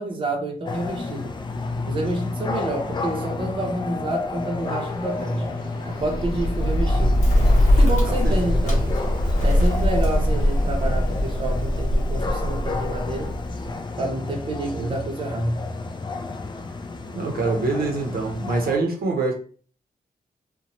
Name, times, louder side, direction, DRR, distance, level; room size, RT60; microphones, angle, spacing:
voice 1, 0.0-1.3 1.9-5.5 5.9-7.2 7.8-8.9 9.4-13.3 14.0-15.6, right 1 dB, 35° right, 0.6 m, -28 dB
sound 1, 0.7-18.8, left 3 dB, 30° left, 0.3 m, -32 dB
sound 2, 4.6-11.4, left 1 dB, 80° left, 0.8 m, -42 dB
Bird, 5.9-13.7, left 1 dB, 50° left, 0.9 m, -21 dB
voice 2, 8.0-8.9 14.7-14.9 17.1-19.3, right 3 dB, 75° right, 0.6 m, -26 dB
2.7 x 2.1 x 2.9 m
wide cardioid pair, 140°, 15 cm